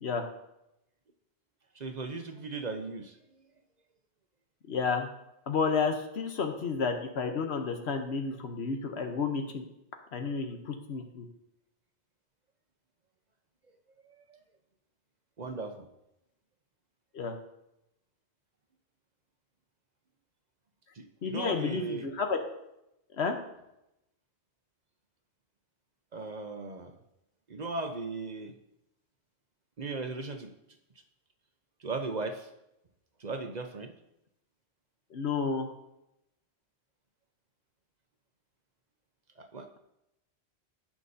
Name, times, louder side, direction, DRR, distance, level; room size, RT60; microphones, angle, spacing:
voice 1, 1.7-3.5 14.0-14.4 15.4-15.9 20.9-22.1 26.1-27.0 27.5-28.5 29.8-30.5 31.8-32.5 33.2-33.9 39.4-39.8, right 3 dB, 45° right, 6 dB, 0.9 m, -37 dB
voice 2, 4.7-5.1 5.5-9.6 10.1-11.2 17.1-17.4 21.2-22.4 23.2-23.4 35.1-35.7, left 5 dB, 80° left, 5 dB, 1.2 m, -31 dB
17.5 x 5.9 x 2.7 m, 0.85 s
omnidirectional pair, 1.1 m